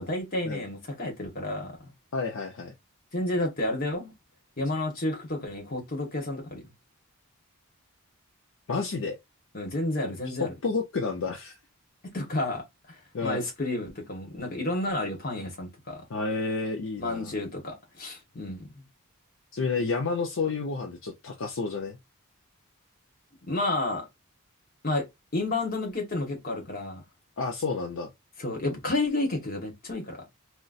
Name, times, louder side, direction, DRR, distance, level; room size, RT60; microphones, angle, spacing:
voice 1, 0.0-1.9 3.1-4.1 4.6-6.6 9.5-10.5 12.1-16.0 17.0-18.8 23.4-24.0 24.8-25.0 25.3-27.0 28.4-30.2, left 2 dB, 40° left, 1.1 m, -31 dB
voice 2, 2.1-2.7 8.7-9.2 10.2-11.5 13.1-13.4 16.1-17.4 19.5-22.0 27.4-28.1, left 4 dB, 65° left, 0.5 m, -30 dB
3.8 x 2.1 x 2.4 m
head